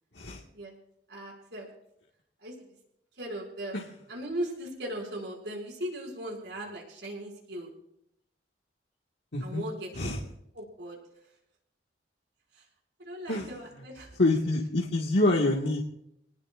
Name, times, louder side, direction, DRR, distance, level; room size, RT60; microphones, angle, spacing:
voice 1, 1.1-1.7 2.4-2.5 3.1-3.8 4.1-7.7 9.4-10.1 10.5-11.0 12.5-12.6 13.0-14.1, right 1 dB, 75° right, -1 dB, 5.8 m, -38 dB
voice 2, 9.3-9.7 9.9-10.2 13.3-13.5 14.2-15.8, left 2 dB, 80° left, -2 dB, 1.7 m, -26 dB
27.0 x 19.5 x 2.5 m, 0.77 s
head